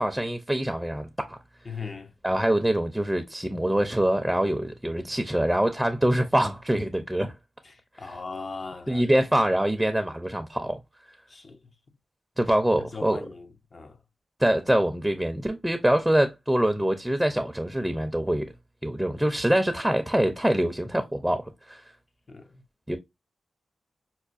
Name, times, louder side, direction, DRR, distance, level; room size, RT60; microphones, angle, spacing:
voice 1, 0.0-1.4 2.2-7.3 8.9-10.8 12.4-13.2 14.4-18.5 18.8-21.8 22.9-23.0, right 1 dB, 5° right, 0.5 m, -24 dB
voice 2, 1.6-2.1 7.6-9.0 11.3-11.6 12.8-14.0 22.3-22.6, left 4 dB, 50° left, 0.5 m, -39 dB
5.5 x 2.1 x 2.4 m
cardioid pair, 60°, 0 cm